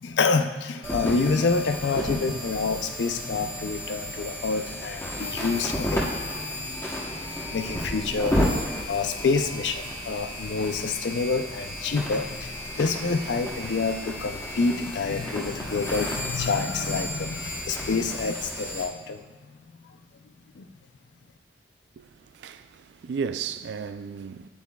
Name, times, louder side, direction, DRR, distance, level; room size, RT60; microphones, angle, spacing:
voice 1, 0.0-6.4 7.5-19.5 20.6-20.7, left 4 dB, 80° left, 0.5 m, -27 dB
sound 1, 0.8-18.8, left 1 dB, 15° left, 1.0 m, -32 dB
voice 2, 22.0-24.5, right 6 dB, 75° right, 0.3 m, -34 dB
9.5 x 8.4 x 2.3 m
head